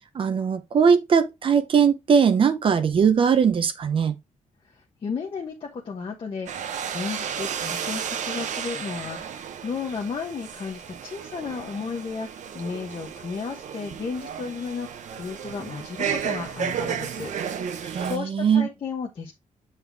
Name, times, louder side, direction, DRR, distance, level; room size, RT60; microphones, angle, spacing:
voice 1, 0.1-4.1 17.9-18.7, right 6 dB, 40° right, 0.8 m, -20 dB
voice 2, 4.7-19.3, left 5 dB, 40° left, 1.2 m, -34 dB
sound 1, 6.5-18.2, right 7 dB, 70° right, 0.9 m, -33 dB
7.8 x 4.3 x 3.4 m
wide cardioid pair, 175°, 13 cm